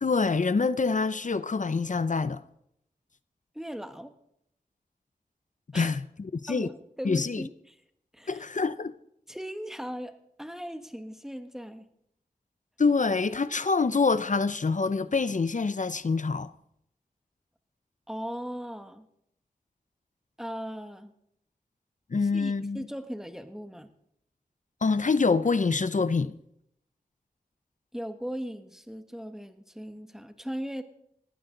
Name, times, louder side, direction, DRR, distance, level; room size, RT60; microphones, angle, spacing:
voice 1, 0.0-2.4 5.7-6.7 7.0-7.4 8.3-9.0 12.8-16.5 22.1-22.9 24.8-26.3, left 4 dB, 55° left, 0.6 m, -26 dB
voice 2, 3.5-4.1 5.7-6.0 6.5-7.8 8.1-8.4 9.3-11.8 18.1-19.1 20.4-21.1 22.2-23.9 27.9-30.8, equal, 5° right, 1.5 m, -38 dB
19.0 x 15.5 x 3.9 m
wide cardioid pair, 55°, 15 cm